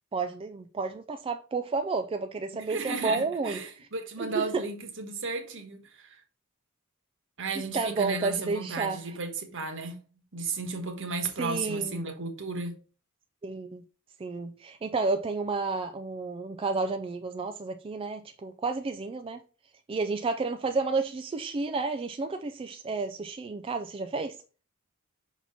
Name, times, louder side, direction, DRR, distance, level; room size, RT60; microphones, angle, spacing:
voice 1, 0.1-3.6 4.2-4.6 7.7-9.2 11.4-12.0 13.4-13.8 14.2-19.4 19.9-24.4, right 3 dB, 25° right, 0.3 m, -31 dB
voice 2, 2.5-6.2 7.4-10.0 10.3-12.7, right 4 dB, 60° right, 1.3 m, -34 dB
5.9 x 4.2 x 4.0 m
head